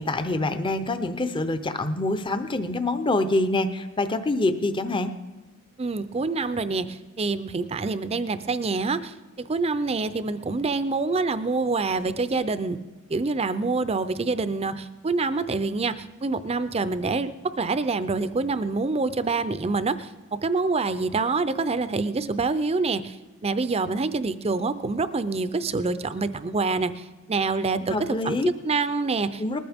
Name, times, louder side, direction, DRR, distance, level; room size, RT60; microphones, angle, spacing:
voice 1, 0.0-5.1 27.9-28.5 29.4-29.6, left 2 dB, 20° left, 10 dB, 0.7 m, -25 dB
voice 2, 5.8-12.8 13.1-23.1 23.4-29.6, right 3 dB, 30° right, 13 dB, 0.5 m, -26 dB
19.5 x 14.0 x 3.6 m, 1.2 s
head